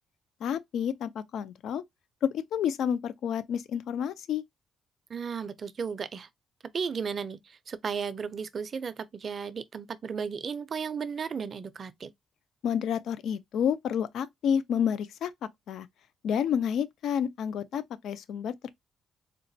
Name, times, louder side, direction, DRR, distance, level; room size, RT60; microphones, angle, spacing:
voice 1, 0.4-1.8 2.2-4.4 12.6-15.3 15.7-15.9 16.2-18.5, left 8 dB, 75° left, 0.4 m, -29 dB
voice 2, 5.1-6.3 6.7-12.1, right 6 dB, 45° right, 0.4 m, -34 dB
3.9 x 2.1 x 2.6 m
cardioid pair, 90°, 0 cm